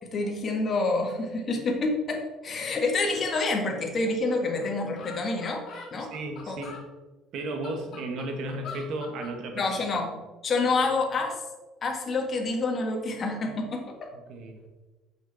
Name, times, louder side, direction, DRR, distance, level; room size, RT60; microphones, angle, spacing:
voice 1, 0.0-5.6 5.9-6.1 6.5-6.6 9.5-10.2 10.4-11.3 11.8-14.0, left 3 dB, 30° left, 1 dB, 1.7 m, -27 dB
sound 1, 4.3-4.4 4.6-4.7 5.0-6.8 7.4-9.3, left 5 dB, 50° left, 2.6 m, -43 dB
voice 2, 6.0-6.8 7.3-9.7 14.1-14.6, right 2 dB, 60° right, 4 dB, 1.6 m, -34 dB
8.8 x 6.4 x 4.1 m, 1.2 s
cardioid pair, 145°, 0 cm